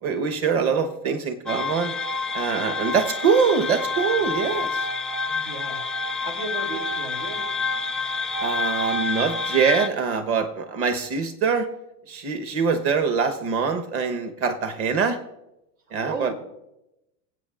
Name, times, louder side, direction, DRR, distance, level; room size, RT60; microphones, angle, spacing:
voice 1, 0.0-2.0 2.3-4.9 8.4-11.7 12.1-15.2 15.9-16.3, right 5 dB, 35° right, 7 dB, 1.1 m, -24 dB
sound 1, 1.5-9.9, left 3 dB, ahead, 0.4 m, -28 dB
voice 2, 5.3-5.8 6.2-7.4 16.0-16.3, right 3 dB, 85° right, 1 dB, 3.1 m, -34 dB
24.0 x 8.5 x 2.5 m, 0.89 s
supercardioid pair, 135°, 40 cm